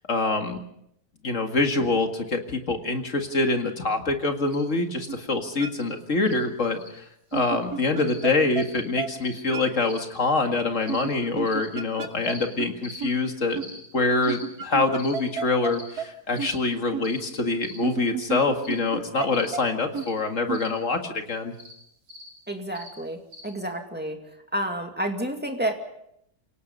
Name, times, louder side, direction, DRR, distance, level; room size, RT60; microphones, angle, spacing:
voice 1, 0.1-0.6 1.2-7.0 7.3-21.5, left 3 dB, 50° left, 5 dB, 2.4 m, -25 dB
sound 1, 4.5-4.6 5.0-5.1 5.7-5.9 6.3-6.4 6.7-6.9 7.3-7.5 8.0-8.2 8.6-8.8 9.2-9.4 9.8-10.0 10.8-11.0 11.4-11.7 12.2-12.4 12.8-13.0 13.6-13.8 14.2-14.4 15.0-15.2 15.7-15.9 16.3-16.6 17.0-17.2 17.6-17.8 18.6-18.8 19.3-19.5 19.9-20.1 20.5-20.7 21.5-21.7 22.1-22.3 22.7-22.9 23.3-23.4, left 1 dB, 55° right, 6.6 m, -44 dB
sound 2, 5.1-5.2 5.6-5.7 7.3-8.3 8.6-8.7 9.0-9.1 9.5-9.6 10.9-12.3 12.6-12.7 13.0-13.1 13.5-13.6 14.3-15.7 16.0-16.1 16.4-16.5 16.9-17.0 17.8-19.3 19.5-19.6 19.9-20.1 20.5-20.6, right 6 dB, 85° right, 2.0 m, -30 dB
voice 2, 22.5-24.2 24.5-25.7, right 1 dB, 5° right, 4 dB, 2.2 m, -30 dB
29.0 x 18.0 x 5.4 m, 0.75 s
omnidirectional pair, 1.6 m